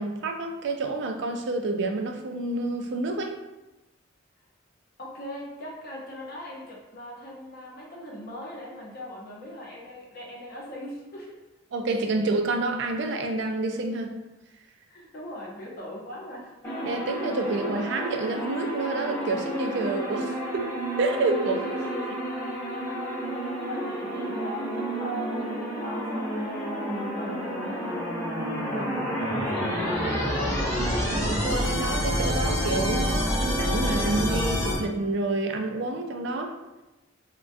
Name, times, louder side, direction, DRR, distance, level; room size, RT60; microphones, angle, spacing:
voice 1, 0.0-3.4 11.7-14.1 16.9-20.7 21.0-21.7 31.1-36.6, right 2 dB, 60° right, 4 dB, 0.4 m, -28 dB
voice 2, 5.0-11.4 14.9-16.5 21.4-22.2 23.6-28.1 28.5-30.1, equal, 50° left, -3 dB, 0.7 m, -40 dB
sound 1, 16.6-34.8, equal, 10° left, 0.8 m, -29 dB
3.5 x 2.2 x 2.5 m, 1.0 s
head